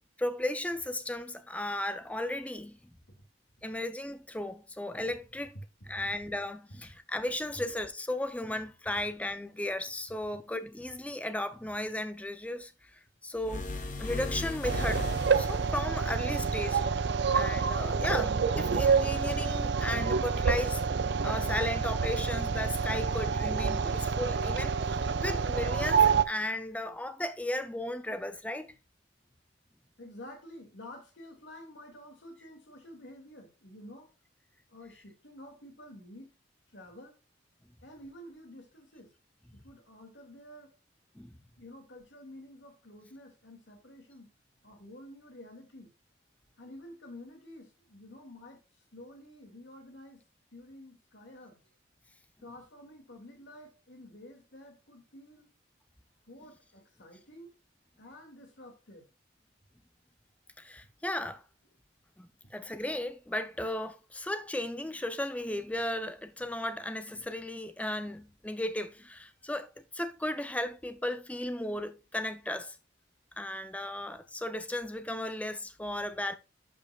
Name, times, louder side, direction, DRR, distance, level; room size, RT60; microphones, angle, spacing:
voice 1, 0.2-2.8 3.6-5.5 5.9-13.7 14.0-16.8 17.3-20.8 21.2-28.7 41.2-41.4 60.6-61.4 62.2-72.8 73.4-76.4, left 1 dB, 5° left, 0.5 m, -35 dB
sound 1, 13.4-15.8, left 2 dB, 40° left, 1.1 m, -36 dB
sound 2, 14.6-26.2, right 5 dB, 60° right, 0.5 m, -28 dB
voice 2, 30.0-34.1 34.7-36.3 36.7-37.2 37.8-39.1 39.5-40.7 41.6-44.3 44.6-45.9 46.6-48.6 48.9-50.2 50.5-51.6 52.4-55.5 56.3-57.6 58.0-59.1, left 1 dB, 65° left, 2.3 m, -50 dB
11.5 x 5.2 x 2.4 m
head